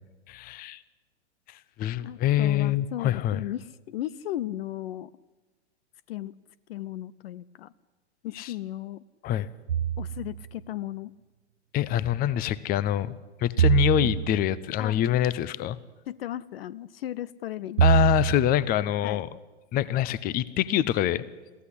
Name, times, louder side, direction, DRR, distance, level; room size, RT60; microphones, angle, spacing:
voice 1, 0.3-0.8 1.5-3.4 8.3-8.5 9.2-9.5 11.7-13.1 13.4-15.8 17.8-19.3 19.7-21.2, left 12 dB, 25° left, 19 dB, 0.8 m, -25 dB
voice 2, 2.0-5.1 6.1-6.3 6.7-7.7 8.2-9.0 10.0-11.1 14.0-14.1 14.8-15.0 16.1-18.2 19.0-19.2, left 13 dB, 55° left, 20 dB, 0.7 m, -36 dB
sound 1, 9.7-10.5 13.6-14.6 17.8-18.7, right 9 dB, 85° right, 0.8 m, -24 dB
22.0 x 15.5 x 10.0 m, 1.3 s
hypercardioid pair, 115°, 35 cm